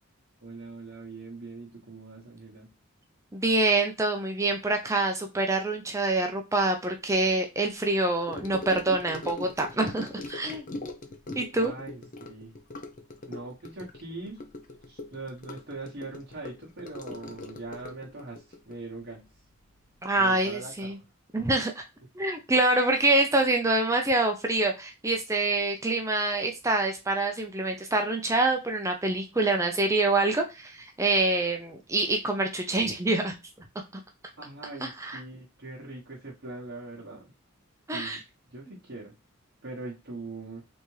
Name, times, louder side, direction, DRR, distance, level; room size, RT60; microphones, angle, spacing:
voice 1, 0.4-2.7 11.5-12.5 13.3-14.4 14.9-19.2 20.2-20.9 34.4-37.3 37.9-38.2 38.5-39.1 39.6-40.6, right 2 dB, 50° right, -5 dB, 1.1 m, -41 dB
voice 2, 3.3-10.7 11.3-11.7 20.0-21.0 21.3-21.8 22.2-33.3 34.8-35.2 37.9-38.2 38.7-38.8, right 2 dB, 15° right, 3 dB, 0.6 m, -26 dB
Gurgling / Sink (filling or washing) / Trickle dribble, 8.3-19.9 20.2-20.5 20.8-20.9, left 2 dB, 35° left, 0.6 m, -41 dB
4.1 x 3.5 x 3.2 m, 0.25 s
head